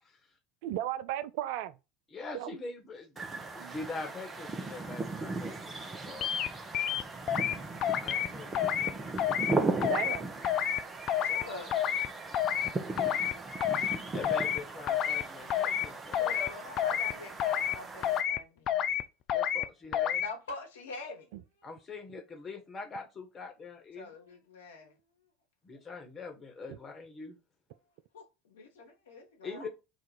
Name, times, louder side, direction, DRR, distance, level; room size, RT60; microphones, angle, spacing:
voice 1, 0.6-1.7 2.3-2.5 9.9-10.2, right 13 dB, 60° right, 0.3 m, -34 dB
voice 2, 2.1-6.3 8.0-9.0 13.8-13.9 14.1-16.4 19.3-20.2 21.6-24.1 25.6-27.4 29.4-29.7, left 3 dB, 30° left, 1.3 m, -43 dB
sound 1, 3.2-18.2, right 3 dB, 25° right, 0.7 m, -38 dB
sound 2, 6.2-6.5 6.7-7.5 7.8-8.3 8.5-8.9 9.2-9.5 9.8-10.2 10.4-10.8 11.1-11.4 11.7-12.1 12.3-12.7 13.0-13.3 13.6-14.0 14.2-14.6 14.9-15.2 15.5-15.9 16.1-16.5 16.8-17.1 17.4-17.8 18.0-18.4 18.7-19.0 19.3-19.6 19.9-20.3, left 10 dB, 45° left, 0.3 m, -29 dB
voice 3, 11.2-12.1 12.8-13.0 13.3-13.4 16.0-18.9 20.2-21.3 21.6-21.7 24.0-25.0 28.1-29.7, left 3 dB, 75° left, 1.1 m, -45 dB
2.9 x 2.4 x 4.1 m
figure-of-eight pair, 75°, 0 cm